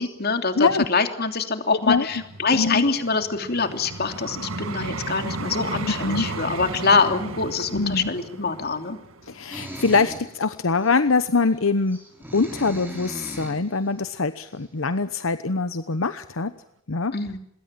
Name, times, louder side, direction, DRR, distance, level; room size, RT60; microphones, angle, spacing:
voice 1, 0.0-9.0 17.1-17.4, left 4 dB, 50° left, 6 dB, 3.0 m, -24 dB
Vehicle, 2.1-11.2 11.8-12.0, right 3 dB, 90° right, 1.9 m, -35 dB
voice 2, 2.5-2.8 6.0-6.3 7.7-8.1 9.3-12.0 12.3-16.5 16.9-17.1, left 4 dB, 75° left, 11 dB, 1.0 m, -23 dB
sound 1, 9.5-10.3 10.8-10.9 11.9-13.6, equal, 10° right, 6.7 m, -37 dB
26.5 x 22.0 x 7.5 m, 0.79 s
head